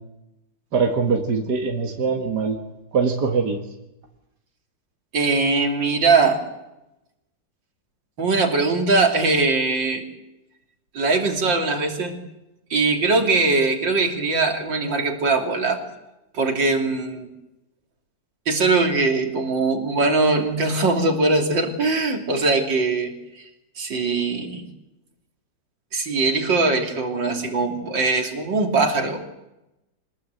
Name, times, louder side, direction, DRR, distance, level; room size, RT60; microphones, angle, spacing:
voice 1, 0.7-2.6 2.9-3.6, right 5 dB, 60° right, 2 dB, 2.4 m, -22 dB
voice 2, 5.1-6.4 8.2-10.0 10.9-12.2 12.7-15.8 16.3-17.3 18.5-23.5 23.8-24.7 25.9-29.2, right 3 dB, 80° right, 3 dB, 3.6 m, -21 dB
25.0 x 20.0 x 8.1 m, 0.95 s
omnidirectional pair, 2.0 m